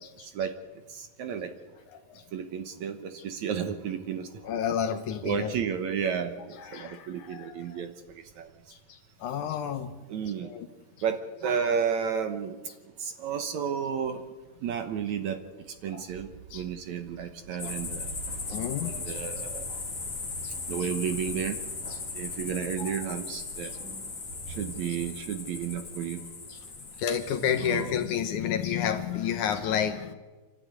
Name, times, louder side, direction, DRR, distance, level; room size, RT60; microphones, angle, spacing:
voice 1, 0.2-0.6 0.9-1.5 2.3-4.3 5.2-7.9 8.4-8.5 10.1-10.5 11.0-12.6 13.0-14.2 14.6-15.4 15.8-18.1 19.1-19.7 20.7-21.6 22.1-23.7 24.6-26.2 27.6-27.9, right 7 dB, 65° right, 8 dB, 2.1 m, -32 dB
voice 2, 1.9-2.3 4.4-5.5 6.6-7.8 8.7-9.9 10.4-10.7 15.9-16.1 16.5-16.7 17.5-17.7 18.5-19.2 20.4-20.5 21.9-22.0 22.8-23.0 23.6-23.8 26.5-30.1, left 8 dB, 70° left, 8 dB, 2.1 m, -31 dB
sound 1, 17.6-28.1, left 3 dB, 30° left, 3.0 m, -38 dB
28.0 x 12.5 x 9.6 m, 1.3 s
omnidirectional pair, 4.2 m